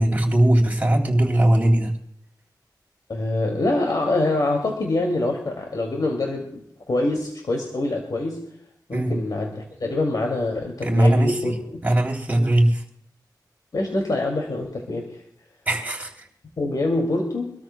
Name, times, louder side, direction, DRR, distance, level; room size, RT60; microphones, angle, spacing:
voice 1, 0.0-1.9 8.9-9.1 10.8-11.5 11.8-12.8 15.6-16.3, right 1 dB, 20° right, 0 dB, 3.2 m, -19 dB
voice 2, 3.1-8.4 8.9-11.8 13.7-15.2 16.6-17.5, left 2 dB, 65° left, 1 dB, 2.5 m, -25 dB
25.5 x 13.5 x 2.3 m, 0.70 s
wide cardioid pair, 85°, 7 cm